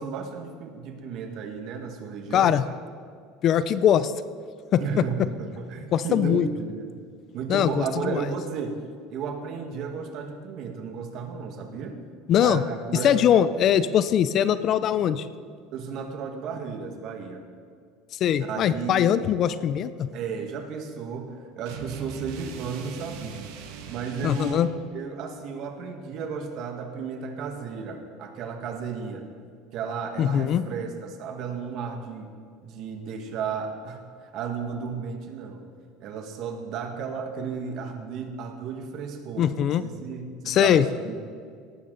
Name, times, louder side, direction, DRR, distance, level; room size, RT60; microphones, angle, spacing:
voice 1, 0.0-2.7 4.8-7.0 7.3-8.8 9.1-12.0 12.4-13.2 15.7-17.4 18.4-19.0 20.1-23.4 23.9-29.3 29.7-32.3 32.6-35.6 36.0-41.2, right 6 dB, 50° right, 5 dB, 1.8 m, -34 dB
voice 2, 2.3-2.6 3.4-4.1 4.7-4.8 5.9-6.5 7.5-8.2 12.3-12.6 13.0-15.3 18.2-20.1 24.2-24.7 30.2-30.6 39.4-39.8 40.5-40.9, left 9 dB, 45° left, 14 dB, 0.5 m, -21 dB
sound 1, 21.7-24.7, right 7 dB, 75° right, 1.6 m, -40 dB
18.0 x 12.5 x 4.1 m, 2.2 s
supercardioid pair, 130°, 0 cm